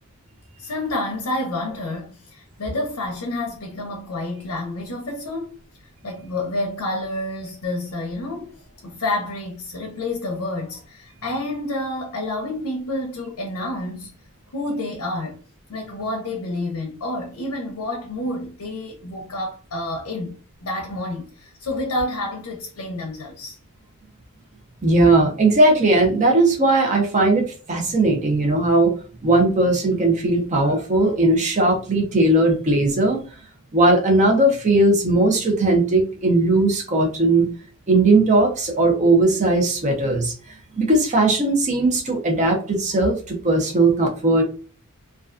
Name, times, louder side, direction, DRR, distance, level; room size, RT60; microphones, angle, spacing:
voice 1, 0.6-5.6 6.0-14.1 14.5-15.4 15.7-23.6, left 1 dB, 70° left, 0.5 m, -29 dB
voice 2, 24.8-28.9 29.2-33.2 33.7-37.5 37.9-40.3 40.8-44.4, right 2 dB, 35° right, 0.6 m, -18 dB
2.3 x 2.2 x 2.4 m
head